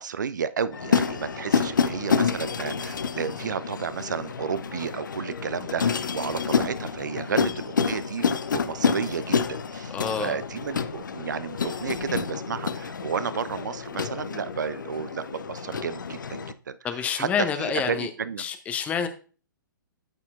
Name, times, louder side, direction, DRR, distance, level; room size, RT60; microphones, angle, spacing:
voice 1, 0.0-8.3 8.5-18.4, right 6 dB, 60° right, 15 dB, 0.5 m, -32 dB
sound 1, 0.7-16.5, left 6 dB, 65° left, 0.5 m, -28 dB
voice 2, 9.9-10.4 16.8-18.1 18.4-19.1, left 7 dB, 10° left, 8 dB, 0.6 m, -28 dB
12.5 x 4.2 x 2.5 m, 0.38 s
figure-of-eight pair, 120°, 11 cm